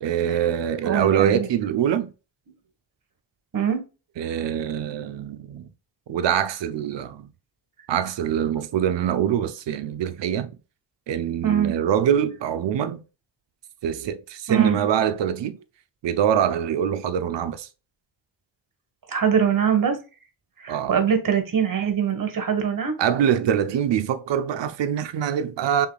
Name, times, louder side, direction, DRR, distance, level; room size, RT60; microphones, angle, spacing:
voice 1, 0.0-2.1 4.2-5.7 6.1-7.3 7.9-10.5 11.1-13.0 13.8-15.6 16.0-17.7 20.7-21.0 23.0-25.9, right 9 dB, 85° right, 0.8 m, -24 dB
voice 2, 0.8-1.5 3.5-3.8 11.4-11.7 14.5-14.8 19.1-20.0 20.6-22.9, right 7 dB, 50° right, 1.6 m, -22 dB
5.8 x 3.9 x 2.3 m
cardioid pair, 95°, 42 cm